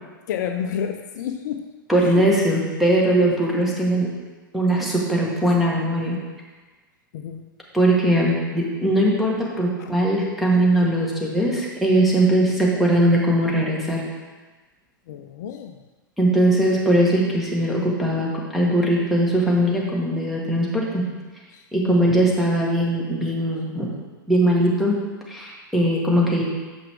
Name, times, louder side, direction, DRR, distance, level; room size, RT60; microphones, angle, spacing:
voice 1, 0.3-1.7 2.0-2.3 7.1-7.5 9.8-9.9 15.1-15.8 21.5-22.1, left 8 dB, 55° left, 6 dB, 0.4 m, -30 dB
voice 2, 1.9-4.1 4.5-6.2 7.7-14.0 16.2-21.0 21.7-23.9 24.3-25.0 25.3-26.4, right 1 dB, ahead, -4 dB, 1.5 m, -20 dB
7.1 x 5.6 x 3.5 m, 1.3 s
figure-of-eight pair, 105°, 11 cm